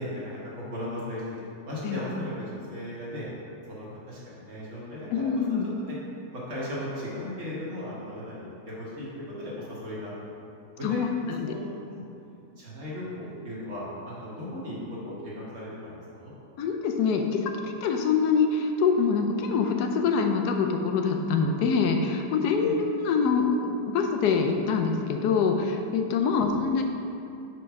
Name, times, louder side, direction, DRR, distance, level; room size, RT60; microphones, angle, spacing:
voice 1, 0.0-3.3 3.7-6.0 6.3-10.1 10.8-12.0 12.6-16.3 22.6-22.8 26.3-26.6, left 1 dB, 50° right, -7 dB, 1.9 m, -37 dB
voice 2, 5.1-5.7 10.8-11.5 16.6-26.8, left 5 dB, 85° left, 4 dB, 1.2 m, -25 dB
5.2 x 4.6 x 5.8 m, 2.6 s
omnidirectional pair, 1.7 m